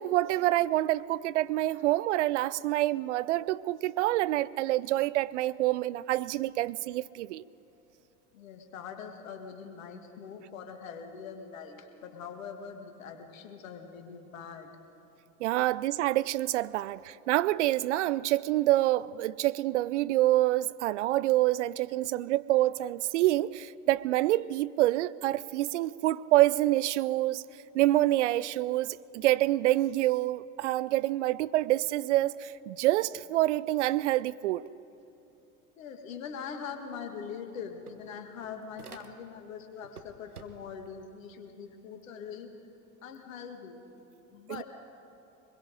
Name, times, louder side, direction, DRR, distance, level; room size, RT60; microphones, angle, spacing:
voice 1, 0.0-7.4 15.4-27.4 27.7-34.6 44.5-44.6, right 16 dB, 55° right, 0.5 m, -27 dB
voice 2, 8.3-14.7 35.8-42.5 43.0-43.8 44.3-44.6, left 6 dB, 65° left, 2.0 m, -42 dB
sound 1, 36.8-36.9 37.2-39.5 39.8-40.9, right 4 dB, 85° right, 1.1 m, -51 dB
24.0 x 21.5 x 5.2 m
figure-of-eight pair, 70°, 44 cm